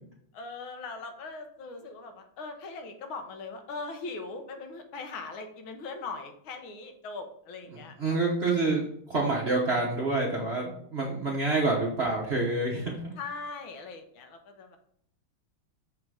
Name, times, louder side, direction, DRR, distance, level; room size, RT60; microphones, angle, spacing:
voice 1, 0.3-8.2 13.2-14.8, left 3 dB, 70° left, 5 dB, 1.7 m, -40 dB
voice 2, 7.7-13.1, right 3 dB, 40° right, -3 dB, 0.9 m, -28 dB
6.7 x 3.9 x 4.8 m, 0.68 s
omnidirectional pair, 2.4 m